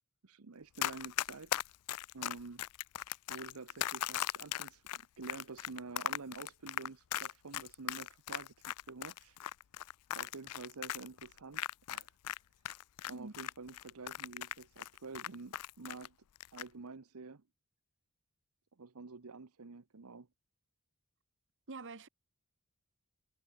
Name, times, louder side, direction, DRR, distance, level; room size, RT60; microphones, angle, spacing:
voice 1, 0.2-1.6 2.1-2.6 3.3-8.5 8.9-9.4 10.1-12.1 13.0-16.2 16.5-17.4 18.8-20.3, right 4 dB, 75° right, 0.9 m, -49 dB
Run, 0.8-12.4 12.6-16.1 16.4-16.7, left 12 dB, 85° left, 0.4 m, -38 dB
voice 2, 21.7-22.1, right 3 dB, 55° right, 1.3 m, -46 dB
head